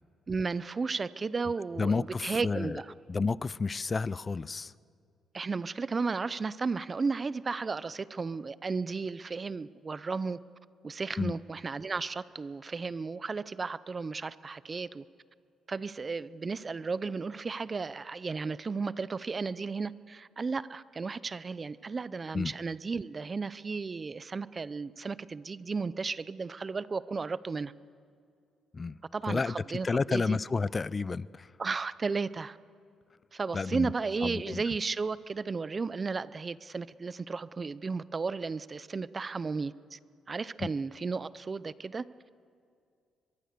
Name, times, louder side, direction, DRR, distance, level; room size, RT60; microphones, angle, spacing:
voice 1, 0.3-2.9 5.3-10.4 10.8-15.0 15.7-27.7 29.1-30.4 31.6-32.6 33.3-40.0 40.3-42.1, right 4 dB, 35° right, 0.6 m, -34 dB
voice 2, 1.8-2.8 3.1-4.7 11.2-11.3 22.3-22.5 28.7-29.0 29.3-29.5 29.8-31.5 33.5-33.9 34.2-34.6 40.6-40.7, left 4 dB, 30° left, 0.5 m, -30 dB
23.0 x 23.0 x 6.8 m
cardioid pair, 90°, 0 cm